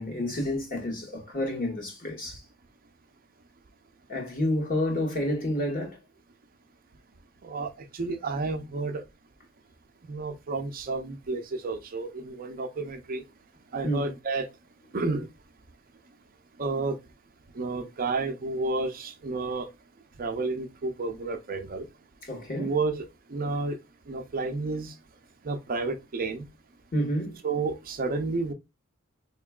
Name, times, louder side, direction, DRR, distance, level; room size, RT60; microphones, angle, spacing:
voice 1, 0.0-2.4 4.1-6.0 13.8-14.0 22.2-22.7 26.9-27.4, left 1 dB, 40° left, 1.5 m, -29 dB
voice 2, 7.4-9.0 10.0-13.2 13.7-14.5 14.9-15.3 16.6-17.0 17.5-19.7 20.2-21.9 22.6-23.8 24.1-24.9 25.4-26.5 27.4-28.5, right 3 dB, 40° right, 0.5 m, -31 dB
4.4 x 2.9 x 2.3 m
head